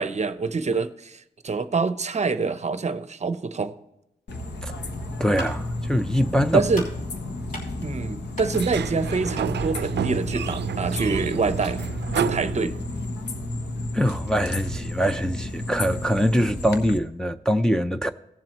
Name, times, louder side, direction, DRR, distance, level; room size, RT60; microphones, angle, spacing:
voice 1, 0.0-3.7 6.5-6.8 7.8-11.8 12.2-12.8, right 4 dB, 40° right, 0.7 m, -26 dB
sound 1, 4.3-17.0, left 2 dB, 85° left, 1.2 m, -32 dB
voice 2, 5.2-6.6 13.9-18.1, equal, 5° left, 0.4 m, -23 dB
sound 2, 5.4-10.1, left 1 dB, 50° left, 3.4 m, -43 dB
Sliding door, 8.5-13.2, right 9 dB, 85° right, 0.4 m, -30 dB
17.5 x 7.5 x 2.9 m
wide cardioid pair, 115°, 17 cm